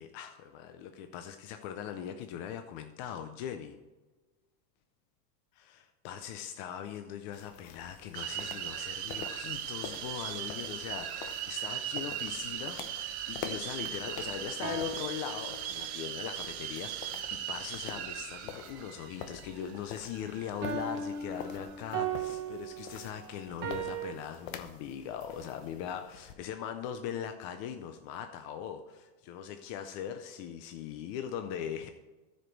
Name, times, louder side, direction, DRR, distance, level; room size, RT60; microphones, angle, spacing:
voice 1, 0.0-3.8 5.7-31.9, left 9 dB, 35° left, 7 dB, 0.4 m, -40 dB
sound 1, 7.3-26.3, left 8 dB, 55° left, 1.0 m, -48 dB
sound 2, 8.1-21.8, right 10 dB, 50° right, 1.1 m, -39 dB
sound 3, 14.2-16.0 20.6-24.1, right 6 dB, 25° right, 0.9 m, -38 dB
14.0 x 5.1 x 4.5 m, 1.2 s
supercardioid pair, 155°, 46 cm